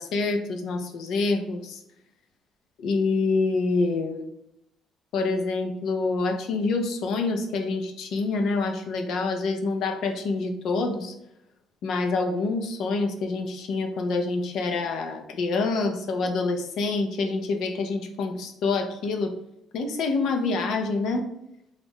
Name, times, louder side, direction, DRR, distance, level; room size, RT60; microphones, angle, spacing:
voice 1, 0.0-1.8 2.8-4.3 5.1-11.1 11.8-19.3 19.7-21.3, left 3 dB, 70° left, 5 dB, 0.6 m, -26 dB
3.9 x 2.4 x 3.6 m, 0.78 s
cardioid pair, 120°, 0 cm